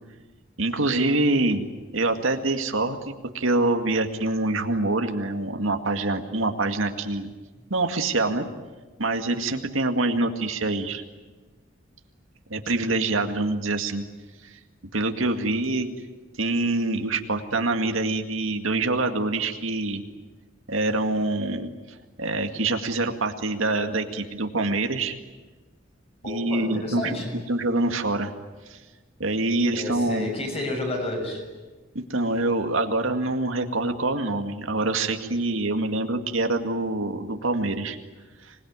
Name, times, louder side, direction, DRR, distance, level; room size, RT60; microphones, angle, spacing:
voice 1, 0.6-1.7 1.9-7.3 7.7-8.5 9.0-11.0 12.5-14.0 14.5-14.6 14.9-15.9 16.4-20.0 20.7-21.7 22.2-25.2 26.2-28.3 28.7-28.8 29.2-30.3 31.9-38.0 38.5-38.6, right 2 dB, 75° right, 5 dB, 2.1 m, -25 dB
voice 2, 26.2-27.4 29.7-31.4, left 2 dB, 30° left, 2 dB, 6.8 m, -31 dB
25.5 x 20.5 x 9.7 m, 1.3 s
head